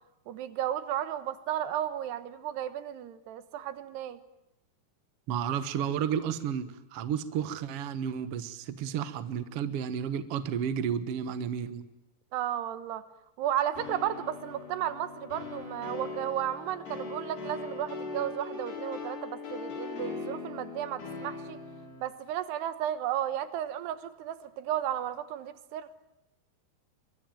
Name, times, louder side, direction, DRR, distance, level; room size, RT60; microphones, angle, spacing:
voice 1, 0.3-4.2 12.3-13.0 13.4-21.6 22.0-25.9, right 11 dB, 85° right, 12 dB, 3.3 m, -33 dB
voice 2, 5.3-11.9, right 8 dB, 70° right, 11 dB, 1.4 m, -32 dB
sound 1, 13.8-22.0, left 4 dB, 85° left, 8.4 m, -40 dB
23.5 x 23.0 x 9.1 m, 0.90 s
omnidirectional pair, 4.7 m